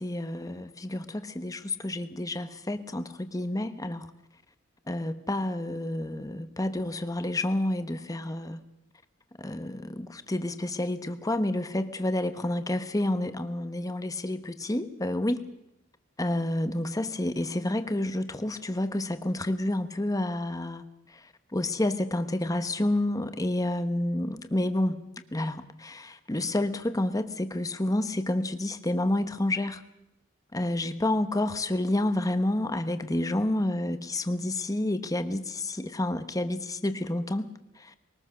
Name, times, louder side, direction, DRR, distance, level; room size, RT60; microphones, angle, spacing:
voice 1, 0.0-4.1 4.9-8.6 9.4-15.4 16.2-25.0 25.3-29.8 30.5-38.0, left 1 dB, 20° left, 10 dB, 1.0 m, -29 dB
22.0 x 19.5 x 6.6 m, 0.85 s
head